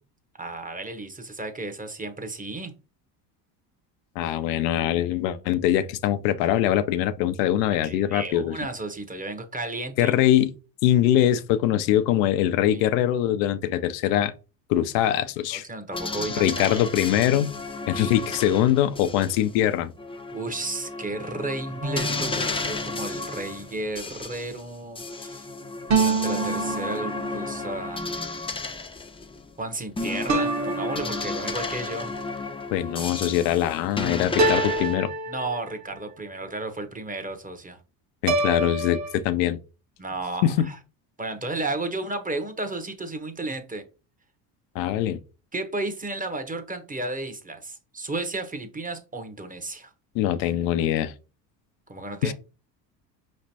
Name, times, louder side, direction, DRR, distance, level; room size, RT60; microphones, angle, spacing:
voice 1, 0.4-2.7 7.7-10.1 12.6-12.9 15.5-16.9 20.3-25.5 25.9-28.0 29.6-32.1 35.3-37.8 40.0-40.8 41.2-43.8 45.5-49.9 51.9-52.3, right 2 dB, 15° right, 0.9 m, -33 dB
voice 2, 4.2-8.6 10.0-10.5 10.8-14.3 14.7-15.6 16.4-17.5 17.9-19.9 32.7-35.1 38.2-39.6 40.4-40.7 44.8-45.2 50.1-51.1 52.2-52.3, left 12 dB, 75° left, 0.6 m, -23 dB
sound 1, 15.9-19.6 20.0-24.6 25.0-29.5 30.0-34.9, left 3 dB, 10° left, 0.5 m, -33 dB
sound 2, 21.8-23.5 25.9-27.6 30.3-31.8 34.4-36.0 38.3-39.1, right 3 dB, 35° right, 1.1 m, -27 dB
5.0 x 3.2 x 2.8 m
hypercardioid pair, 70°, 49 cm